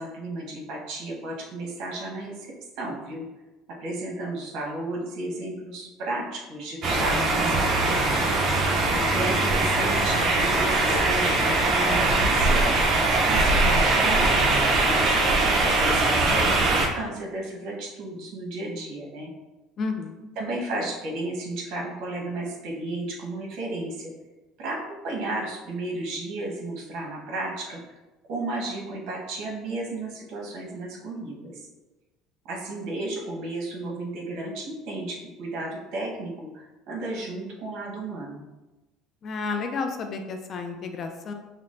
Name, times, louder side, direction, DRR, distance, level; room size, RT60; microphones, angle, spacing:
voice 1, 0.0-2.5 2.8-3.3 3.8-8.5 9.1-12.8 13.3-15.1 15.6-19.3 20.3-24.1 24.6-27.8 28.3-31.6 32.5-38.4, right 2 dB, 65° right, -2 dB, 1.1 m, -33 dB
sound 1, 6.8-16.9, right 2 dB, 45° right, 0.7 m, -21 dB
voice 2, 19.8-20.2 39.2-41.3, left 4 dB, 40° left, 5 dB, 0.4 m, -31 dB
5.8 x 2.1 x 2.6 m, 1.1 s
cardioid pair, 135°, 0 cm